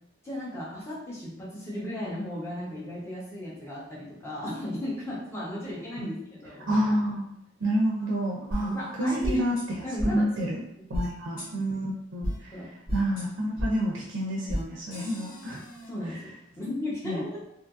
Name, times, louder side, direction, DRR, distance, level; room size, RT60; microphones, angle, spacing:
voice 1, 0.2-6.7 8.6-9.5 9.8-11.1 12.5-12.7 15.5-17.4, left 1 dB, 10° left, -6 dB, 0.7 m, -36 dB
voice 2, 6.7-7.3 7.6-9.6 10.1-10.6 10.9-12.5 12.9-15.6 17.0-17.2, equal, 65° right, -3 dB, 0.4 m, -28 dB
sound 1, 8.5-8.6 9.2-9.6 10.0-10.1 10.9-11.1 11.4-11.5 12.2-12.3 12.9-13.2 13.6-13.7 14.5-14.6 14.9-15.9, equal, 45° left, 1.0 m, -31 dB
2.6 x 2.5 x 2.4 m, 0.76 s
head